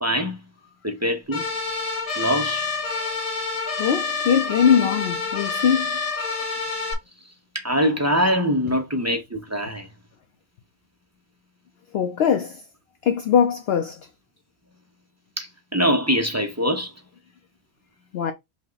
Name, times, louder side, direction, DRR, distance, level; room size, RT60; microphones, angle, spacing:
voice 1, 0.0-0.4 0.8-1.5 2.2-2.6 7.5-9.9 15.4-16.9, equal, 25° right, 0.3 m, -23 dB
sound 1, 1.3-6.9, left 4 dB, 80° left, 1.5 m, -28 dB
voice 2, 3.8-5.9 11.9-12.6 13.0-14.0 18.1-18.3, left 8 dB, 60° left, 0.7 m, -21 dB
5.3 x 2.2 x 3.9 m
omnidirectional pair, 1.5 m